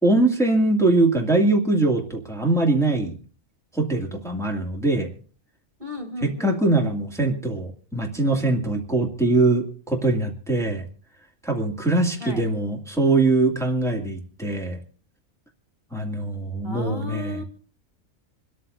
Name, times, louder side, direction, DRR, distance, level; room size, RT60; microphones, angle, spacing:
voice 1, 0.0-3.2 3.7-5.1 6.2-10.9 11.4-14.8 15.9-17.4, right 2 dB, ahead, 0 dB, 2.2 m, -22 dB
voice 2, 5.8-6.6 12.2-12.5 16.6-17.4, left 1 dB, 35° right, 2 dB, 2.1 m, -34 dB
26.5 x 13.5 x 2.7 m, 0.42 s
omnidirectional pair, 1.4 m